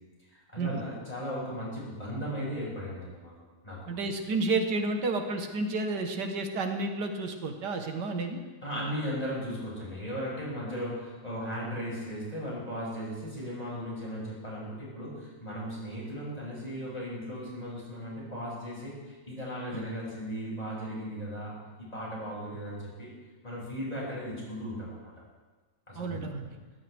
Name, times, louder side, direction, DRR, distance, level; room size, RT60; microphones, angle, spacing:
voice 1, 0.3-3.3 3.6-3.8 8.6-23.1 23.4-25.1 25.9-26.3, equal, 20° left, -6 dB, 7.1 m, -37 dB
voice 2, 3.9-8.4 26.0-26.5, right 3 dB, 80° right, 4 dB, 1.9 m, -31 dB
23.0 x 15.5 x 3.5 m, 1.3 s
omnidirectional pair, 1.8 m